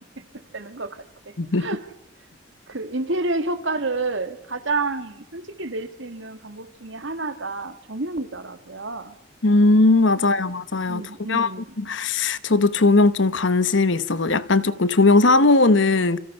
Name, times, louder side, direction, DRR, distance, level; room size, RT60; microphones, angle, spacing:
voice 1, 0.5-1.0 1.6-1.8 2.7-9.1 10.4-10.5 10.9-11.7, right 3 dB, 65° right, 2.1 m, -29 dB
voice 2, 9.4-11.5 11.8-16.2, left 3 dB, 65° left, 1.1 m, -18 dB
28.5 x 27.5 x 5.6 m
head